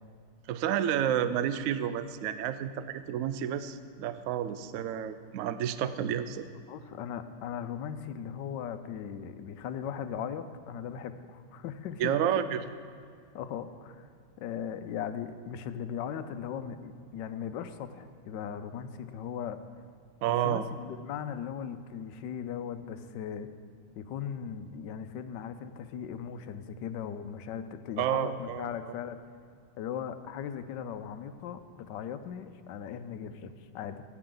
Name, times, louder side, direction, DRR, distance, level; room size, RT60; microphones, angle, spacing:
voice 1, 0.5-6.5 12.0-12.6 20.2-20.6 28.0-28.9, right 10 dB, 85° right, 12 dB, 0.7 m, -30 dB
voice 2, 6.7-12.2 13.3-14.1 14.4-19.6 20.3-23.5 24.0-29.2 29.8-34.0, left 8 dB, 80° left, 10 dB, 1.3 m, -38 dB
16.5 x 8.7 x 3.8 m, 2.2 s
omnidirectional pair, 2.0 m